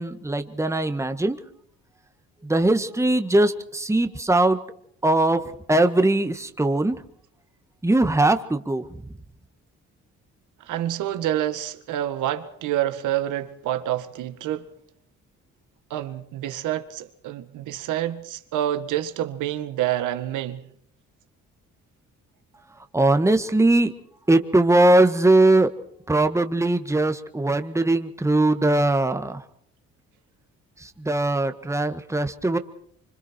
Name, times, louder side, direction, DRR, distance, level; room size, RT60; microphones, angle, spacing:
voice 1, 0.0-1.4 2.4-4.6 5.0-5.4 5.7-7.0 7.8-8.8 22.9-23.9 24.3-25.7 26.1-29.4 31.0-32.6, right 2 dB, 10° right, 1.7 m, -20 dB
voice 2, 10.6-14.7 15.9-20.7, right 12 dB, 90° right, 1.9 m, -28 dB
26.0 x 25.5 x 4.6 m
cardioid pair, 90°, 30 cm